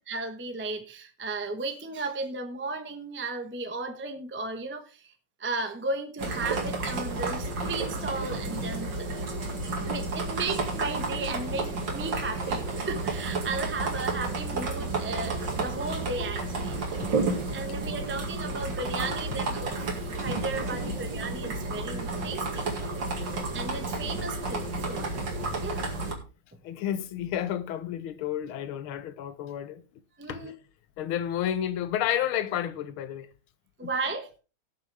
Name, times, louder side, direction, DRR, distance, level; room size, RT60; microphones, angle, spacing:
voice 1, 0.1-5.1 5.4-9.4 9.8-17.0 17.5-19.7 20.2-22.7 23.5-25.2 25.6-25.9 30.2-30.5 33.8-34.3, right 3 dB, 10° right, 0.8 m, -35 dB
sound 1, 6.2-26.1, right 3 dB, 60° right, 2.7 m, -31 dB
voice 2, 26.6-29.8 30.3-30.5 31.0-33.3 33.8-33.9, left 10 dB, 85° left, 1.7 m, -31 dB
17.5 x 6.7 x 3.4 m
omnidirectional pair, 2.2 m